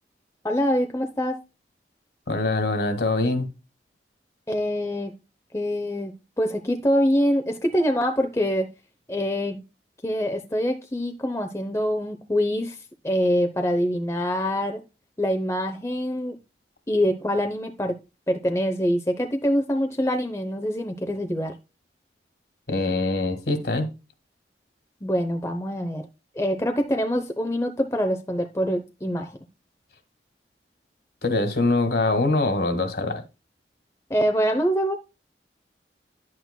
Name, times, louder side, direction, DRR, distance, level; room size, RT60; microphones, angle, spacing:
voice 1, 0.4-1.4 4.5-5.1 5.5-8.7 9.1-9.6 10.0-12.8 13.0-14.8 15.2-16.4 16.9-18.0 18.3-21.5 25.0-26.1 26.4-29.3 34.1-35.0, equal, 15° left, 0.7 m, -25 dB
voice 2, 2.3-3.5 22.7-23.9 31.2-33.2, left 2 dB, 65° left, 1.8 m, -23 dB
11.0 x 8.1 x 2.2 m
head